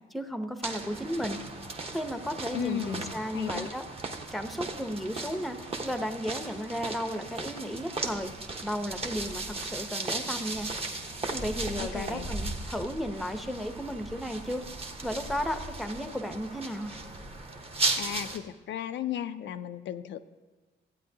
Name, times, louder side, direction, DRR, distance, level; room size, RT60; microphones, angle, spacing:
voice 1, 0.1-1.4 1.9-3.8 4.3-10.7 11.3-14.6 15.0-17.0, equal, ahead, 7 dB, 0.7 m, -34 dB
sound 1, 0.6-18.4, right 3 dB, 30° right, 1.0 m, -36 dB
voice 2, 2.5-3.7 11.8-12.3 18.0-20.2, left 10 dB, 65° left, 9 dB, 0.4 m, -35 dB
14.0 x 8.6 x 2.8 m, 1.3 s
cardioid pair, 90°, 20 cm